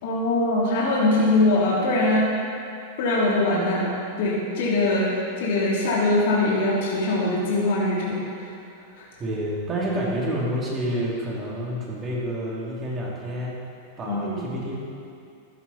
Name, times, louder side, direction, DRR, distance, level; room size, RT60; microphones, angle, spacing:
voice 1, 0.0-2.3 3.0-3.9 4.2-8.5 8.9-9.0 14.0-14.5, left 2 dB, 65° left, -6 dB, 3.2 m, -22 dB
voice 2, 9.2-13.6 14.0-14.7, equal, 20° right, -5 dB, 3.0 m, -28 dB
14.0 x 11.0 x 4.3 m, 2.5 s
supercardioid pair, 145°, 0 cm